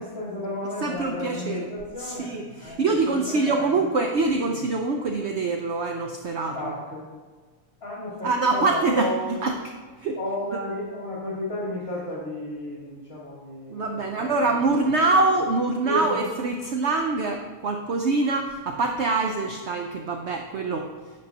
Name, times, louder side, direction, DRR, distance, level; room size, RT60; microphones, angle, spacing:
voice 1, 0.0-2.3 2.6-3.7 6.5-7.0 7.8-9.5 10.2-13.8 14.2-14.6 15.8-16.2, left 1 dB, 40° left, -8 dB, 2.3 m, -32 dB
voice 2, 0.8-1.7 2.0-6.7 8.2-9.6 10.0-10.2 10.5-10.6 13.7-20.9, right 3 dB, 60° right, 3 dB, 0.8 m, -25 dB
11.5 x 7.6 x 2.9 m, 1.4 s
omnidirectional pair, 1.6 m